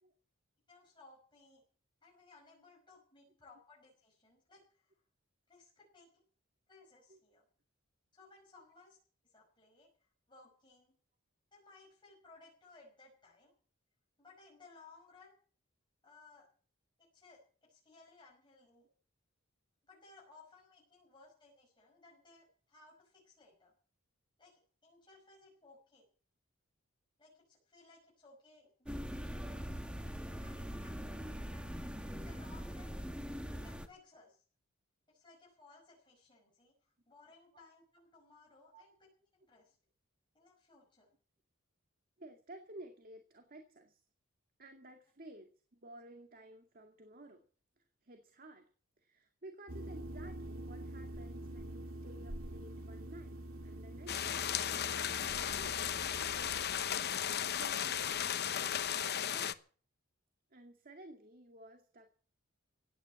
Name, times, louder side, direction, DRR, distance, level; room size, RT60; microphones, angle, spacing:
voice 1, 0.7-1.6 2.0-4.9 5.5-6.1 6.7-7.4 8.1-9.0 9.2-11.0 11.5-13.5 14.2-15.4 16.0-16.5 17.0-18.9 19.8-23.7 24.4-26.1 27.2-29.7 30.0-31.7 32.1-33.0 33.5-34.4 35.1-39.1 39.4-39.8 40.3-41.1, left 3 dB, 20° left, -3 dB, 5.7 m, -61 dB
sound 1, 28.9-33.9, equal, 5° right, 1.6 m, -42 dB
voice 2, 42.2-44.0 44.6-47.4 47.8-48.7 49.0-53.4 53.6-55.8 57.4-59.6 60.5-62.1, right 1 dB, 45° right, 5 dB, 2.1 m, -54 dB
sound 2, 49.7-56.6, right 1 dB, 75° right, 2.0 m, -46 dB
sound 3, 54.1-59.5, left 9 dB, 50° left, 0.9 m, -35 dB
16.5 x 10.5 x 7.6 m, 0.43 s
head